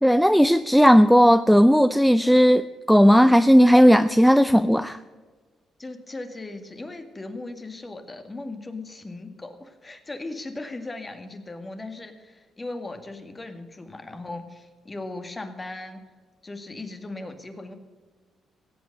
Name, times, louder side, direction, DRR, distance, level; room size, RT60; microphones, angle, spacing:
voice 1, 0.0-2.6 2.9-5.0, equal, ahead, 12 dB, 0.5 m, -16 dB
voice 2, 5.8-16.0 16.4-17.7, left 2 dB, 20° left, 7 dB, 2.0 m, -38 dB
17.0 x 8.3 x 6.7 m, 1.4 s
cardioid pair, 90°, 0 cm